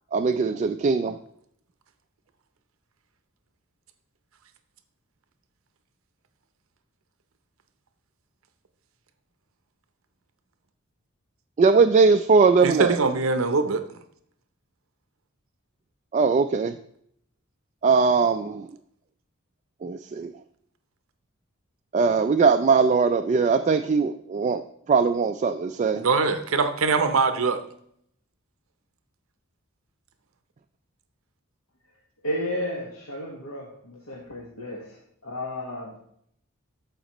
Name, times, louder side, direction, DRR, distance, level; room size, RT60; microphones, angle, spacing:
voice 1, 0.1-1.2 11.6-13.0 16.1-16.7 17.8-18.7 19.8-20.3 21.9-24.6 24.9-26.0, right 4 dB, 35° right, 7 dB, 0.3 m, -20 dB
voice 2, 12.6-13.8 26.0-27.6, right 4 dB, 70° right, 8 dB, 0.7 m, -22 dB
voice 3, 32.2-36.0, equal, 85° left, -2 dB, 1.3 m, -33 dB
13.5 x 5.1 x 3.0 m, 0.69 s
head